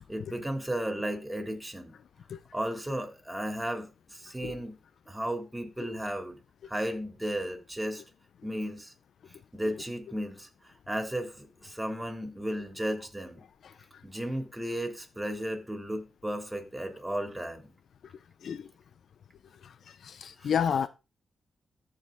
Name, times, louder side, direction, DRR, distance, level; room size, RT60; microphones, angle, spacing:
voice 1, 0.1-1.9 2.5-4.8 5.1-6.4 6.7-8.0 8.4-8.9 9.5-10.5 10.9-13.4 14.0-17.7 20.4-20.5, equal, 10° right, 3.2 m, -34 dB
voice 2, 20.0-20.9, left 7 dB, 75° left, 0.5 m, -29 dB
14.5 x 4.9 x 3.9 m
cardioid pair, 55°, 0 cm